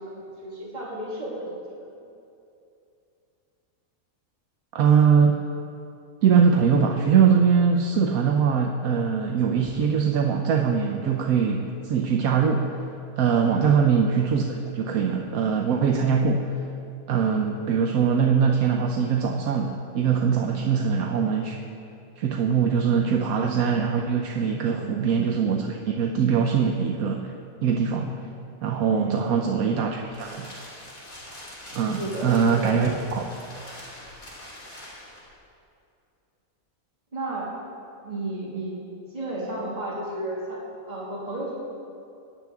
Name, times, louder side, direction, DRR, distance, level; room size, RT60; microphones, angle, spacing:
voice 1, 0.0-1.5 13.4-13.7 20.5-20.7 24.6-24.9 28.9-29.2 31.7-32.8 37.1-37.5 38.0-38.8 39.1-41.5, right 1 dB, 30° right, -7 dB, 2.3 m, -33 dB
voice 2, 4.7-5.4 6.2-12.8 13.2-16.6 17.1-21.6 22.2-27.3 27.6-28.2 28.6-30.5 31.7-33.3, right 6 dB, 85° right, 2 dB, 1.2 m, -22 dB
sound 1, 29.6-35.3, left 1 dB, 50° left, 3.8 m, -43 dB
18.5 x 10.5 x 3.5 m, 2.6 s
omnidirectional pair, 1.5 m